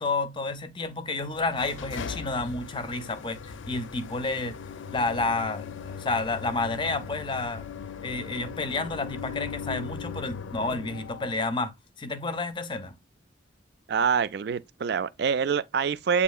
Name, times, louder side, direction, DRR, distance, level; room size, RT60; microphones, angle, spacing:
voice 1, 0.0-3.4 3.7-4.6 4.9-7.7 8.0-12.9, left 3 dB, 25° left, 0.5 m, -30 dB
sound 1, 1.2-11.5, left 6 dB, 75° left, 0.5 m, -39 dB
voice 2, 13.9-16.2, right 6 dB, 55° right, 0.3 m, -25 dB
7.9 x 2.8 x 2.3 m
head